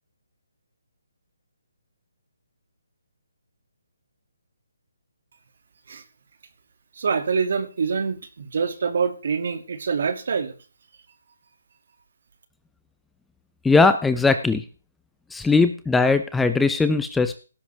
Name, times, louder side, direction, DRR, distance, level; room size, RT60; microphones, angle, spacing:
voice 1, 7.0-10.5, right 5 dB, 60° right, 9 dB, 2.4 m, -25 dB
voice 2, 13.6-14.6 15.3-17.3, left 4 dB, 5° left, 11 dB, 0.7 m, -19 dB
17.5 x 10.5 x 3.5 m, 0.35 s
figure-of-eight pair, 150°, 0 cm